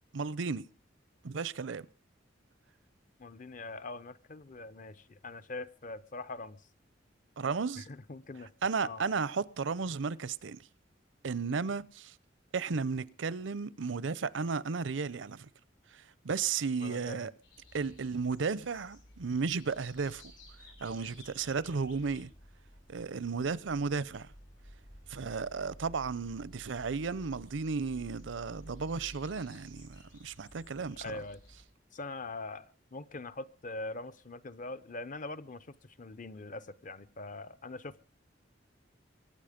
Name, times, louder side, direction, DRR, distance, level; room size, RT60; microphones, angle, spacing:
voice 1, 0.1-0.7 1.2-1.9 7.4-7.9 8.6-10.7 11.2-12.1 12.5-15.5 15.9-17.3 17.7-20.2 20.8-22.3 22.9-24.3 25.1-31.2, right 5 dB, 80° right, 0.6 m, -34 dB
voice 2, 3.2-6.6 7.8-8.5 8.8-9.0 16.8-17.2 31.0-31.4 31.9-38.0, left 2 dB, 45° left, 0.7 m, -43 dB
sound 1, 17.4-31.6, equal, 80° left, 7.8 m, -54 dB
23.0 x 9.3 x 5.1 m
head